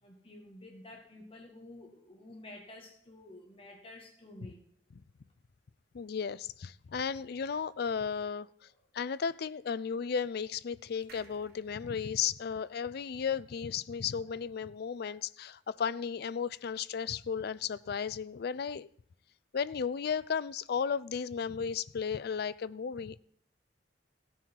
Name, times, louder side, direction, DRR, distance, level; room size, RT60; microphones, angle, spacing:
voice 1, 0.0-4.6 11.0-11.1 14.2-14.4 15.0-15.2, left 1 dB, 30° left, 1.9 m, -51 dB
voice 2, 5.9-8.5 8.9-18.9 19.5-23.2, left 6 dB, 60° left, 0.4 m, -34 dB
sound 1, 11.1-14.6 15.0-15.1 15.3-15.4, right 4 dB, 60° right, 1.5 m, -61 dB
16.0 x 9.4 x 4.6 m
head